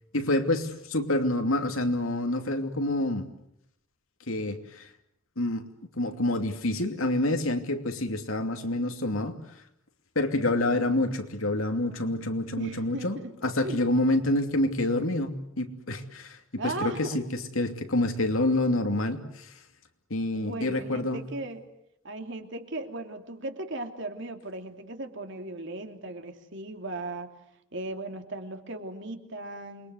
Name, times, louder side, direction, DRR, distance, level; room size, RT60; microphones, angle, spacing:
voice 1, 0.1-3.3 4.3-4.9 5.4-5.7 6.0-9.4 10.1-13.2 13.4-19.5 20.1-21.2, left 1 dB, 80° left, 6 dB, 2.7 m, -27 dB
voice 2, 12.5-13.8 16.6-17.2 20.3-21.6 22.0-27.3 27.7-29.9, right 2 dB, 60° right, 5 dB, 2.9 m, -37 dB
28.0 x 22.5 x 8.0 m, 0.76 s
head